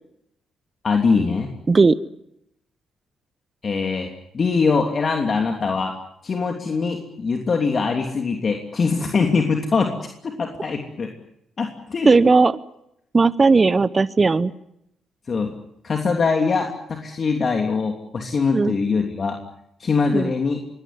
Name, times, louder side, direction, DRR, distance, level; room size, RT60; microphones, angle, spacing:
voice 1, 0.8-1.5 3.6-4.1 4.3-5.9 6.2-9.9 10.2-11.1 11.6-12.3 15.3-15.5 15.8-19.4 19.8-20.6, left 4 dB, 45° left, 3 dB, 3.0 m, -22 dB
voice 2, 12.0-12.6 13.1-14.5 18.5-18.7 20.1-20.3, right 4 dB, 35° right, 16 dB, 0.9 m, -16 dB
24.0 x 19.0 x 9.6 m, 0.79 s
supercardioid pair, 55°, 0 cm